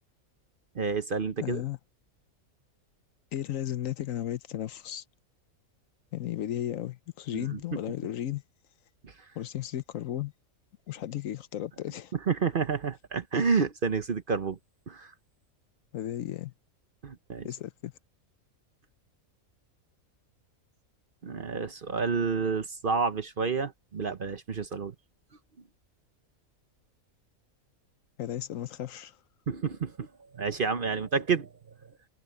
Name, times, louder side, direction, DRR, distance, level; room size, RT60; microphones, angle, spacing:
voice 1, 0.7-1.6 7.3-7.6 9.0-9.1 12.3-14.6 14.9-15.1 17.0-17.5 21.2-24.9 29.5-30.1 30.3-31.5, right 5 dB, 45° right, 0.9 m, -29 dB
voice 2, 1.4-1.8 3.3-5.0 6.1-8.4 9.3-10.3 10.9-12.1 15.9-16.5 17.4-17.9 28.2-29.2, left 12 dB, 70° left, 1.0 m, -34 dB
omnidirectional pair, 1.5 m